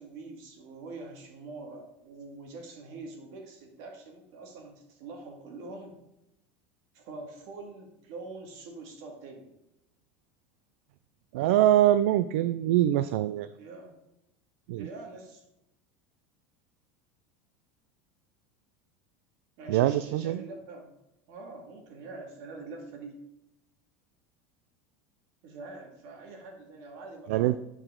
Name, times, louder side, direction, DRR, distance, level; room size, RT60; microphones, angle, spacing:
voice 1, 0.0-6.0 6.9-9.5 13.6-13.9 14.8-15.4 19.6-20.9 21.3-23.2 25.4-27.6, right 3 dB, 65° right, 2 dB, 2.1 m, -44 dB
voice 2, 11.3-13.5 14.7-14.9 19.7-20.4 27.3-27.6, right 13 dB, 80° right, 13 dB, 0.3 m, -23 dB
9.8 x 5.0 x 3.7 m, 0.90 s
supercardioid pair, 125°, 7 cm